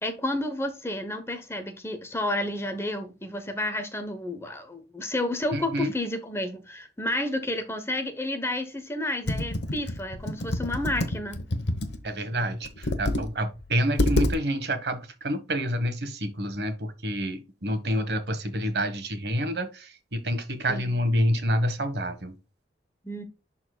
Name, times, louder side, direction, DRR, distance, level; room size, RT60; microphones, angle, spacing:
voice 1, 0.0-11.4 20.7-21.0 23.0-23.2, left 1 dB, 15° left, 0.9 m, -31 dB
voice 2, 5.5-5.9 12.0-22.3, equal, 70° right, 1.4 m, -28 dB
Computer keyboard, 9.3-12.0 12.6-13.3 13.6-13.7 14.0-14.3, left 1 dB, 80° left, 1.0 m, -27 dB
11.0 x 4.2 x 2.3 m
head